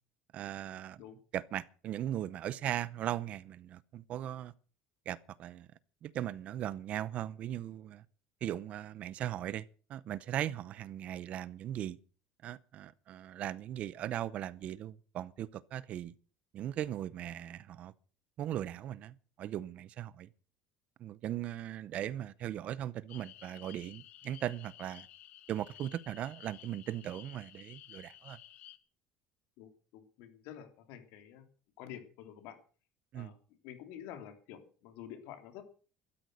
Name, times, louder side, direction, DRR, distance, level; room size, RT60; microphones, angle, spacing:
voice 1, 0.3-1.0 1.3-4.5 5.1-5.7 6.0-8.0 8.4-12.0 12.4-16.1 16.5-17.9 18.4-20.3 21.0-25.1 25.5-28.4 33.1-33.3, right 12 dB, 40° right, 0.7 m, -38 dB
sound 1, 23.1-28.8, left 13 dB, 50° left, 1.4 m, -54 dB
voice 2, 29.6-31.4 31.8-32.6 33.1-33.4 33.6-35.6, left 10 dB, 70° left, 3.3 m, -49 dB
13.5 x 13.0 x 6.4 m
cardioid pair, 170°, 3 cm